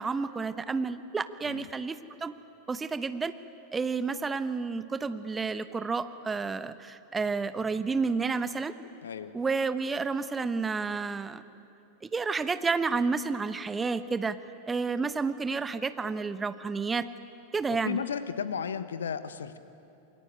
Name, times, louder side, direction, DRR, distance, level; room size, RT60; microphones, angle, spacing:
voice 1, 0.0-2.3 2.7-3.3 3.7-8.7 9.3-11.4 12.1-14.4 14.7-17.1 17.5-18.0, right 4 dB, 15° right, 12 dB, 1.1 m, -30 dB
voice 2, 9.0-9.3 17.8-19.6, left 7 dB, 65° left, 12 dB, 1.3 m, -34 dB
28.0 x 22.0 x 9.3 m, 2.8 s
figure-of-eight pair, 90°, 0 cm